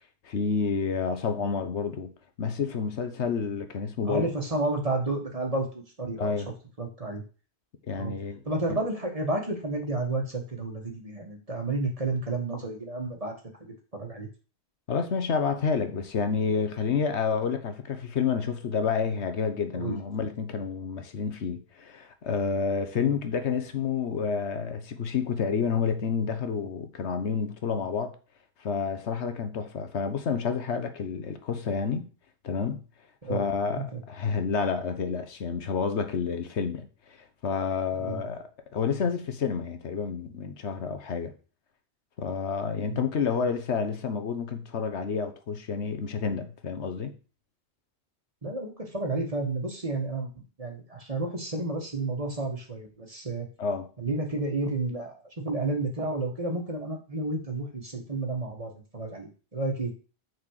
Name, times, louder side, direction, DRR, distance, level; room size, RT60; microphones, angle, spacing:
voice 1, 0.2-2.1 2.4-4.3 6.2-6.5 7.9-8.4 8.7-8.8 14.9-28.2 28.6-32.0 32.4-32.8 33.3-41.3 42.2-47.1 53.6-53.9, left 5 dB, 80° left, 1.3 m, -29 dB
voice 2, 4.0-6.4 6.8-7.2 7.9-8.1 8.5-13.3 13.6-14.3 19.7-20.0 22.9-23.1 33.2-33.5 33.9-34.0 38.0-38.2 42.9-43.0 48.4-53.5 54.0-59.9, right 2 dB, 35° right, 1.8 m, -31 dB
6.5 x 4.4 x 6.5 m
omnidirectional pair, 1.1 m